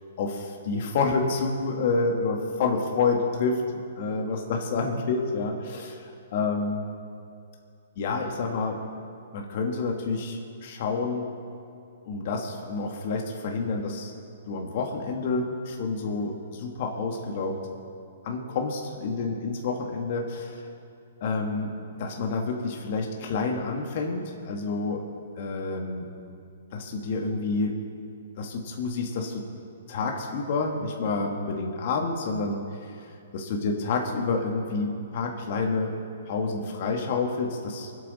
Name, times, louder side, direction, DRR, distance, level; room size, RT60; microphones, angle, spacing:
voice 1, 0.2-6.8 8.0-8.8 9.3-11.3 12.1-14.1 14.5-17.6 18.2-20.6 21.2-21.7 22.0-25.0 25.4-26.1 26.7-27.7 28.4-29.5 29.9-33.1 33.3-35.9 36.3-37.9, left 4 dB, 50° left, 1 dB, 1.8 m, -28 dB
25.0 x 8.6 x 4.2 m, 2.4 s
hypercardioid pair, 145°, 0 cm